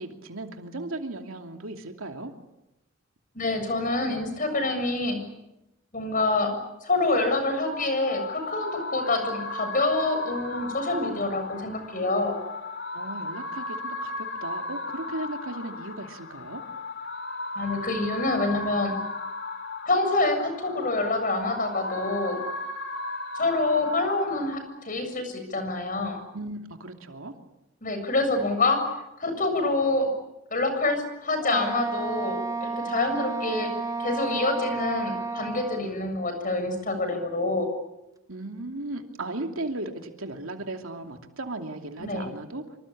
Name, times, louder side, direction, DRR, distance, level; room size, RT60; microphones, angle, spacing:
voice 1, 0.0-2.3 12.9-16.6 26.3-27.3 38.3-42.8, right 2 dB, 80° right, 4 dB, 2.8 m, -36 dB
voice 2, 3.3-5.2 5.9-6.5 6.8-12.4 17.5-18.9 19.9-22.4 23.3-26.2 27.8-28.8 29.2-30.1 30.5-32.4 32.6-33.7 34.0-37.7 42.0-42.3, left 2 dB, 40° left, 7 dB, 7.3 m, -26 dB
sound 1, 7.5-24.5, left 2 dB, 60° left, 2.9 m, -36 dB
Wind instrument woodwind instrument, 31.4-35.9, right 3 dB, 15° right, 1.2 m, -31 dB
26.0 x 25.0 x 8.7 m, 0.93 s
head